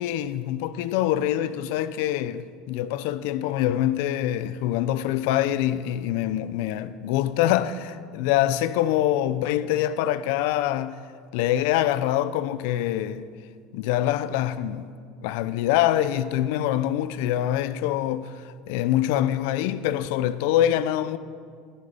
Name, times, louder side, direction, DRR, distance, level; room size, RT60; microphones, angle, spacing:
voice 1, 0.0-11.0 11.3-13.2 13.7-14.9 15.2-21.2, left 12 dB, 75° left, 0.6 m, -25 dB
13.5 x 12.5 x 5.4 m
supercardioid pair, 115°, 0 cm